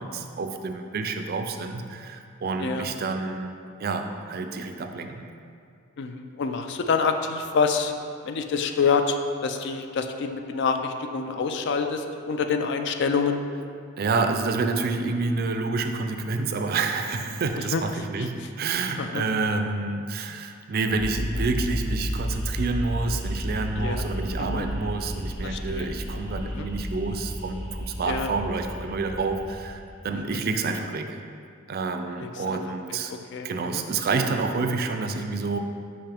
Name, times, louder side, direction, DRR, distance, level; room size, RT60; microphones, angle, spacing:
voice 1, 0.0-3.5 3.8-5.3 14.0-31.2 31.7-33.1 33.4-35.6, right 3 dB, 45° right, 6 dB, 0.4 m, -28 dB
voice 2, 6.0-7.9 8.2-13.4 17.7-17.8 18.2-18.3 19.0-19.2 23.8-24.0 24.4-24.7 25.4-25.9 26.6-26.7 28.1-28.3 30.3-30.4 32.2-32.6 33.1-33.8, left 5 dB, 55° left, 6 dB, 0.4 m, -27 dB
sound 1, 20.9-30.2, equal, 75° left, 1.4 m, -32 dB
5.7 x 5.3 x 3.4 m, 2.3 s
head